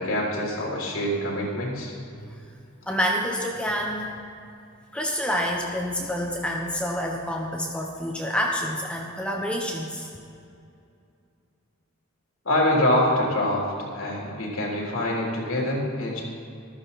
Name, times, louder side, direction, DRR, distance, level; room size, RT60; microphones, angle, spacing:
voice 1, 0.0-1.9 12.5-16.2, left 1 dB, 80° left, -3 dB, 3.4 m, -25 dB
voice 2, 2.9-4.2 4.9-10.1, equal, 5° left, -1 dB, 1.0 m, -28 dB
14.5 x 13.0 x 4.2 m, 2.5 s
head